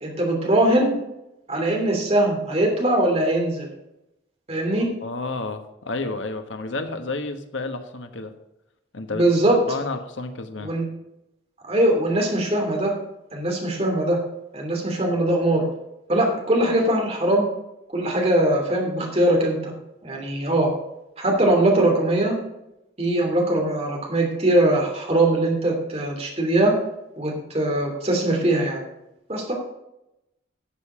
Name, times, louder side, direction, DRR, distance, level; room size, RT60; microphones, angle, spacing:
voice 1, 0.0-1.0 1.5-3.7 4.5-4.9 9.1-9.6 10.6-10.8 11.7-12.9 13.3-14.2 14.5-15.7 16.1-17.5 17.9-19.7 20.0-20.7 21.2-22.4 23.0-26.7 27.2-28.8 29.3-29.5, right 1 dB, 35° right, 0 dB, 2.9 m, -21 dB
voice 2, 5.0-8.3 8.9-9.2 9.7-10.7 20.1-20.2, left 3 dB, 85° left, 7 dB, 1.3 m, -31 dB
13.0 x 7.5 x 5.0 m, 0.90 s
head